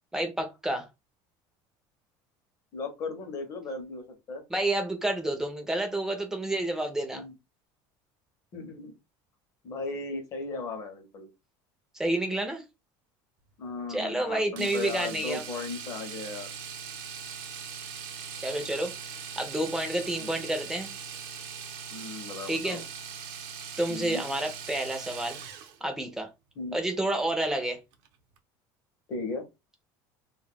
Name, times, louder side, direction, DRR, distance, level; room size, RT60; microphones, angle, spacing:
voice 1, 0.1-0.9 4.5-7.2 12.0-12.6 13.9-15.4 18.4-20.9 22.5-22.8 23.8-25.4 25.8-26.3 26.7-27.8, right 1 dB, 5° right, 0.5 m, -29 dB
voice 2, 2.7-4.4 7.1-7.3 8.5-9.0 9.6-11.3 13.6-16.5 20.2-20.5 21.9-22.9 23.9-24.2 26.6-26.8 29.1-29.5, left 3 dB, 35° left, 0.7 m, -37 dB
Domestic sounds home sounds, 14.6-25.8 27.9-28.1 28.4-28.5, right 7 dB, 60° right, 0.6 m, -40 dB
2.2 x 2.1 x 3.4 m
cardioid pair, 175°, 10 cm